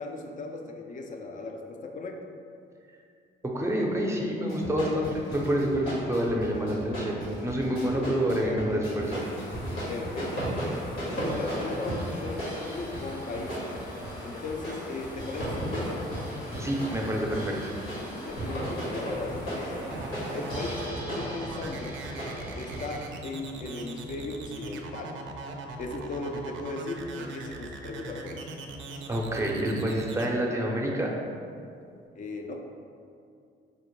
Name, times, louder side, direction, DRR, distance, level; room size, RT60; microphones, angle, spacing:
voice 1, 0.0-2.2 7.8-8.9 9.9-10.5 11.0-13.6 14.2-16.1 18.2-19.7 20.3-22.1 22.6-25.2 25.8-28.5 32.2-32.7, left 3 dB, 40° left, 3 dB, 0.4 m, -37 dB
voice 2, 3.4-9.2 16.6-17.7 29.1-31.1, equal, 15° right, -1 dB, 0.5 m, -28 dB
sound 1, 4.5-23.0, equal, 90° left, 1.4 m, -35 dB
sound 2, 9.0-20.9, left 1 dB, 75° left, 0.9 m, -44 dB
sound 3, 19.8-30.3, right 4 dB, 75° right, 0.4 m, -40 dB
4.9 x 2.0 x 3.0 m, 2.4 s
cardioid pair, 90°, 20 cm